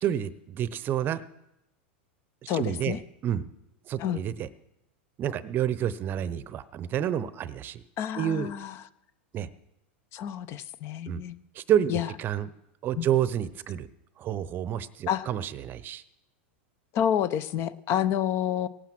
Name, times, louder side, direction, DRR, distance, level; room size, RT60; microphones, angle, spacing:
voice 1, 0.0-1.2 2.4-3.4 3.9-4.5 5.2-7.8 8.1-8.5 9.3-9.5 11.1-11.2 11.5-12.5 12.8-13.9 14.2-16.0, right 10 dB, 35° right, 17 dB, 0.7 m, -29 dB
voice 2, 2.5-3.0 4.0-4.2 8.0-8.7 10.1-11.3 11.9-12.1 13.0-13.1 15.1-15.3 16.9-18.7, left 10 dB, 45° left, 16 dB, 0.7 m, -28 dB
18.0 x 9.1 x 6.0 m, 0.85 s
supercardioid pair, 125°, 6 cm